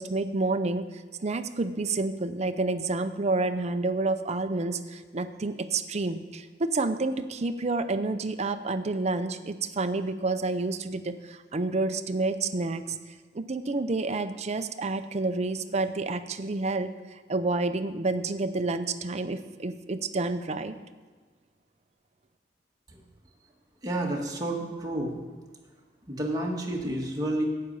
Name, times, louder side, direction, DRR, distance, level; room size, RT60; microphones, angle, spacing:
voice 1, 0.0-12.8 13.3-20.7, right 3 dB, 40° right, 9 dB, 0.6 m, -29 dB
voice 2, 23.8-25.1 26.1-27.4, right 1 dB, 20° right, -1 dB, 1.8 m, -30 dB
11.5 x 8.7 x 5.5 m, 1.4 s
head